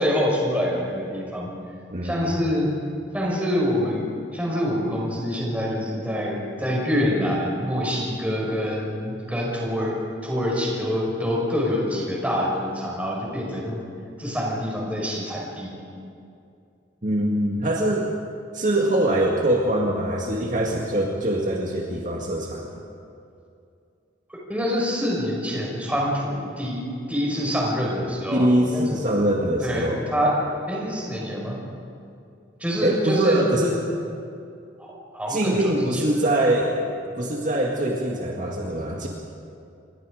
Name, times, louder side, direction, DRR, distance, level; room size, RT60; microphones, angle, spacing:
voice 1, 0.0-1.5 2.0-2.7 3.1-10.0 10.2-13.8 14.2-15.7 24.3-28.9 29.2-29.3 29.6-30.4 30.7-31.6 32.6-33.4 34.8-34.9 35.1-36.0, equal, 5° right, -3 dB, 5.5 m, -26 dB
voice 2, 1.9-2.3 17.0-18.1 18.5-22.8 28.3-30.1 32.8-33.8 35.3-36.8 37.2-39.1, right 1 dB, 40° right, -1 dB, 2.1 m, -23 dB
28.0 x 22.5 x 5.1 m, 2.5 s
head